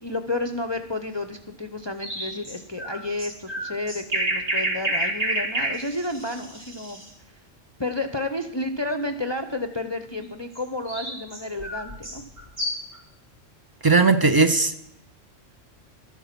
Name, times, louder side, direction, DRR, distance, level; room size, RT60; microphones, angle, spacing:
voice 1, 0.0-7.1 7.8-12.2, left 2 dB, 30° left, 7 dB, 0.6 m, -31 dB
sound 1, 2.0-7.1 10.5-13.0, right 1 dB, 85° right, 3.5 m, -29 dB
voice 2, 13.8-14.8, right 4 dB, 35° right, 10 dB, 0.3 m, -18 dB
12.5 x 9.4 x 5.9 m, 0.78 s
omnidirectional pair, 1.3 m